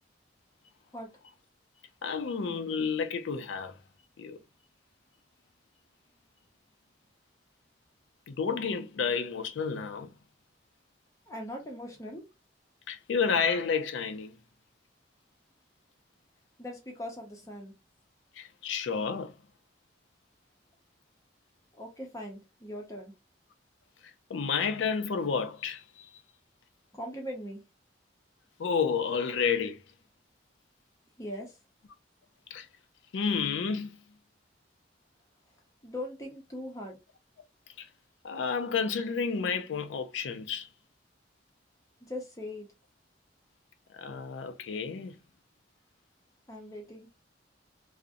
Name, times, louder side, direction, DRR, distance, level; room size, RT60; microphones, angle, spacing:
voice 1, 2.0-3.8 4.2-4.4 8.3-10.1 12.9-14.3 18.4-19.4 24.3-26.2 28.6-29.8 32.5-32.7 33.1-33.9 37.8-37.9 38.2-40.7 44.0-45.2, left 6 dB, 80° left, 0.4 m, -30 dB
voice 2, 11.3-12.2 16.6-17.7 21.7-23.1 26.9-27.6 31.2-31.6 35.8-37.0 42.0-42.7 46.5-47.1, left 1 dB, 15° left, 0.5 m, -40 dB
2.5 x 2.0 x 2.5 m
head